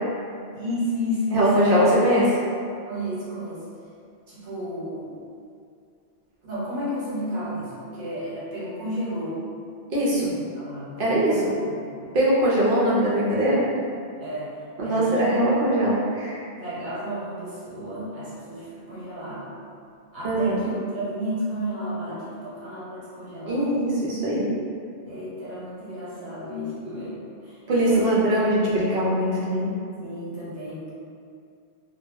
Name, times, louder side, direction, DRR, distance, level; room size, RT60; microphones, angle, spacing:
voice 1, 0.5-1.7 2.8-3.6 4.3-5.1 6.4-9.4 10.3-11.9 14.2-14.5 14.8-15.4 16.6-19.5 20.1-23.6 25.1-27.6 27.9-28.2 30.0-30.9, equal, 45° right, -10 dB, 1.1 m, -32 dB
voice 2, 1.3-2.3 9.9-10.3 11.0-11.5 12.1-13.6 14.8-16.4 20.2-20.6 23.5-24.5 27.7-29.7, right 1 dB, 60° right, -6 dB, 0.7 m, -21 dB
2.2 x 2.0 x 3.3 m, 2.4 s
omnidirectional pair, 1.1 m